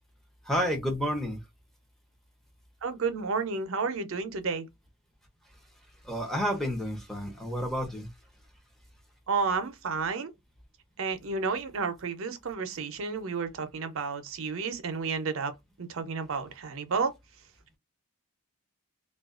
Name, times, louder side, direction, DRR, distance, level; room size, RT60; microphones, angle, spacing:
voice 1, 0.5-1.4 6.1-8.1, equal, ahead, 0.6 m, -30 dB
voice 2, 2.8-4.7 9.3-10.3 11.0-15.5 15.8-17.1, right 5 dB, 65° right, 0.5 m, -31 dB
2.4 x 2.2 x 2.3 m
head